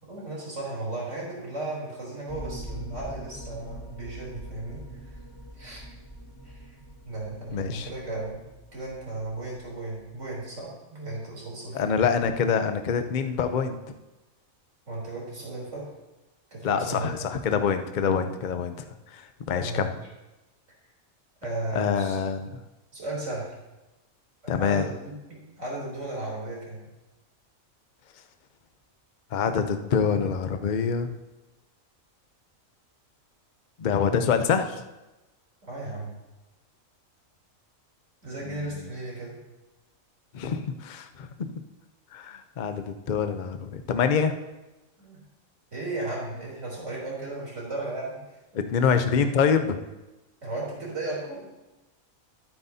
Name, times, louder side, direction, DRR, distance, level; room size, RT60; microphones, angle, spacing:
voice 1, 0.0-5.1 5.6-5.8 6.4-6.7 7.0-8.4 8.7-11.8 14.9-15.9 16.5-17.4 18.0-18.3 19.5-20.0 21.4-22.2 22.9-23.5 24.4-26.9 35.6-36.1 38.2-39.4 45.0-45.2 45.7-48.4 48.8-49.2 50.4-51.5, right 2 dB, 60° right, -4 dB, 3.8 m, -35 dB
sound 1, 2.3-10.6, right 1 dB, 20° left, 1.4 m, -44 dB
voice 2, 7.5-7.9 11.7-13.8 16.6-18.8 19.1-19.9 21.7-22.5 24.5-24.9 29.3-31.1 33.8-34.8 38.4-38.9 40.3-41.6 42.1-44.4 48.5-49.8, left 6 dB, 45° left, 8 dB, 0.7 m, -26 dB
12.0 x 9.4 x 2.8 m, 1.0 s
omnidirectional pair, 1.4 m